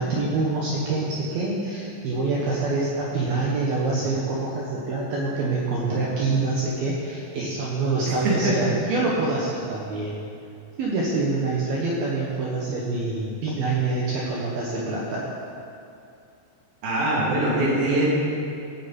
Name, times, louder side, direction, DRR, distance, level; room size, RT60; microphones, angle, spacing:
voice 1, 0.0-10.2 10.8-15.3, right 3 dB, 70° right, -4 dB, 2.5 m, -26 dB
voice 2, 16.8-18.1, right 1 dB, 50° right, -6 dB, 4.5 m, -22 dB
17.0 x 9.0 x 4.3 m, 2.5 s
omnidirectional pair, 5.7 m